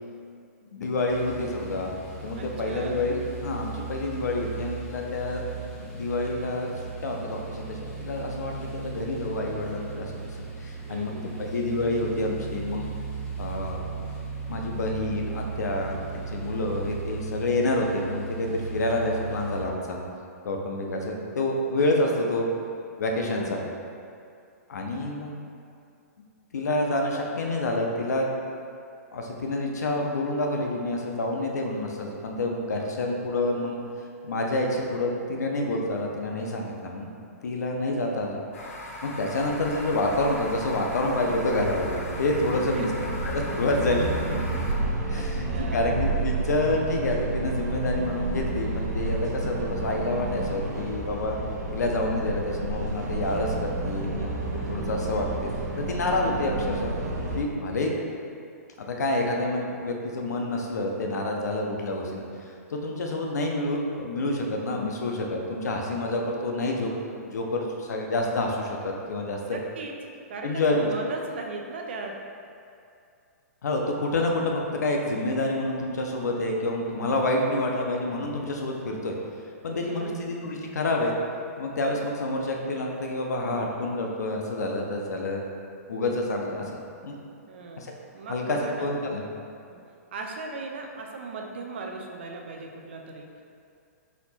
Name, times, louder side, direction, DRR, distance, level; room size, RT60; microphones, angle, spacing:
voice 1, 0.7-1.9 2.2-5.5 5.9-6.7 7.0-10.3 10.6-11.2 11.5-12.9 13.4-14.0 14.5-20.0 20.4-22.5 23.0-23.6 24.7-25.4 26.5-28.3 29.1-33.8 34.2-37.1 37.4-38.4 39.0-42.9 43.2-44.1 45.1-51.4 51.7-54.4 54.7-55.5 55.7-56.9 57.4-57.9 58.8-66.9 67.2-69.6 70.4-70.9 73.6-79.1 79.6-81.2 81.6-85.4 85.9-87.2 87.8-87.9 88.3-89.2, left 2 dB, 85° left, 0 dB, 0.7 m, -28 dB
sound 1, 1.1-19.6, right 4 dB, 10° left, 0.6 m, -36 dB
voice 2, 2.3-3.0 10.9-11.3 23.3-23.6 42.7-43.1 45.2-46.0 69.4-69.9 70.3-72.1 79.7-80.2 87.5-87.8 88.1-88.9 89.7-89.8 90.1-93.3, right 3 dB, 40° right, 1 dB, 0.4 m, -37 dB
sound 2, 38.5-44.8, left 1 dB, 55° left, 0.8 m, -39 dB
sound 3, 39.4-57.4, right 2 dB, 80° right, 0.8 m, -31 dB
4.2 x 2.8 x 4.2 m, 2.4 s
hypercardioid pair, 175°, 9 cm